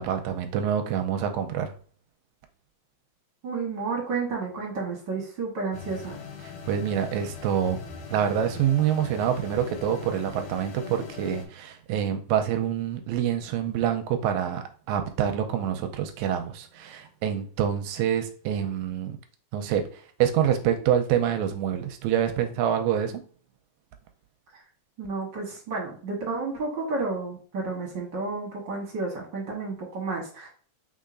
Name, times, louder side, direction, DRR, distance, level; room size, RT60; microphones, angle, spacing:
voice 1, 0.0-1.7 6.7-7.8 8.1-19.2 19.5-19.8 20.2-23.2, right 9 dB, 80° right, 6 dB, 1.8 m, -26 dB
voice 2, 3.4-6.2 25.0-30.5, right 3 dB, 50° right, -1 dB, 1.4 m, -31 dB
sound 1, 5.7-11.5, left 6 dB, 80° left, 2.2 m, -41 dB
5.5 x 3.5 x 2.5 m, 0.42 s
omnidirectional pair, 3.5 m